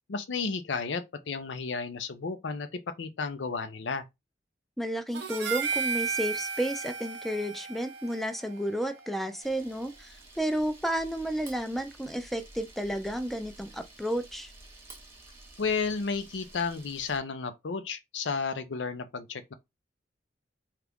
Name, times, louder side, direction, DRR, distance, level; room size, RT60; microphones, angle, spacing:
voice 1, 0.1-4.0 15.6-19.5, left 4 dB, 85° left, 0.5 m, -32 dB
voice 2, 4.8-14.5, equal, ahead, 0.3 m, -32 dB
Harmonica, 5.1-9.6, right 6 dB, 75° right, 0.6 m, -35 dB
Camera, 9.4-17.2, right 2 dB, 15° right, 0.8 m, -51 dB
2.9 x 2.4 x 3.4 m
head